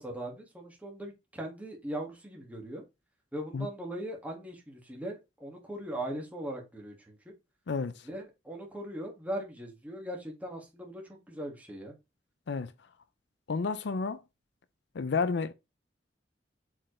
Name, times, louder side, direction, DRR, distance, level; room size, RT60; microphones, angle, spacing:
voice 1, 0.0-2.8 3.3-7.2 8.0-12.0, right 1 dB, 10° right, 1.9 m, -39 dB
voice 2, 13.5-14.2 15.0-15.5, left 4 dB, 65° left, 0.5 m, -30 dB
7.4 x 4.6 x 3.2 m
head